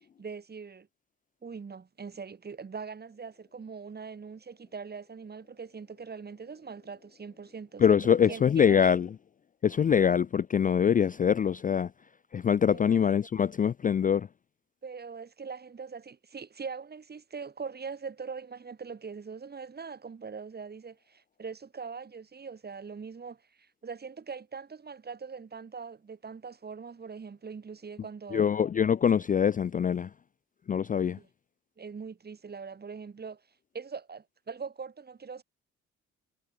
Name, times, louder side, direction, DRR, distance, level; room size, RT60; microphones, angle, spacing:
voice 1, 0.2-0.9 1.4-9.0 10.0-10.1 12.7-13.0 14.8-28.5 31.2-31.3 31.8-33.4 33.7-35.4, right 5 dB, 35° right, 2.3 m, -42 dB
voice 2, 7.8-9.1 9.6-11.9 12.3-14.3 28.3-30.1 30.7-31.2, left 8 dB, 30° left, 0.4 m, -24 dB
cardioid pair, 90°, 30 cm